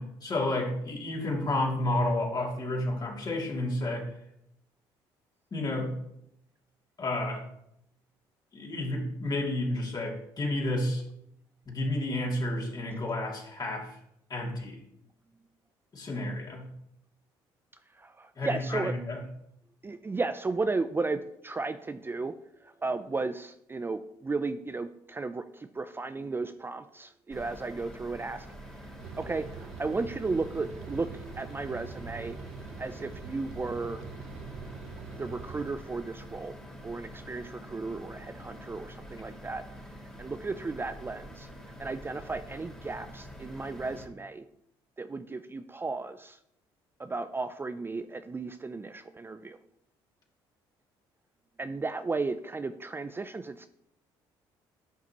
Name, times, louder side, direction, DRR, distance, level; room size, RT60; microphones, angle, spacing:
voice 1, 0.0-4.1 5.5-6.0 7.0-7.4 8.5-11.0 11.7-14.0 14.3-14.8 15.9-16.7 18.4-19.2, left 1 dB, 40° left, -1 dB, 2.7 m, -31 dB
voice 2, 17.9-18.9 19.8-22.3 22.6-28.5 29.2-31.1 31.4-32.4 32.8-34.0 35.1-36.6 36.8-39.6 40.2-41.5 41.8-44.4 45.0-46.4 47.0-49.6 51.6-53.7, right 3 dB, 20° right, 10 dB, 0.4 m, -34 dB
sound 1, 27.3-44.1, equal, 5° left, 2.0 m, -46 dB
sound 2, 29.0-35.7, right 6 dB, 70° right, 0.8 m, -44 dB
10.5 x 5.8 x 3.0 m, 0.76 s
supercardioid pair, 65°, 11 cm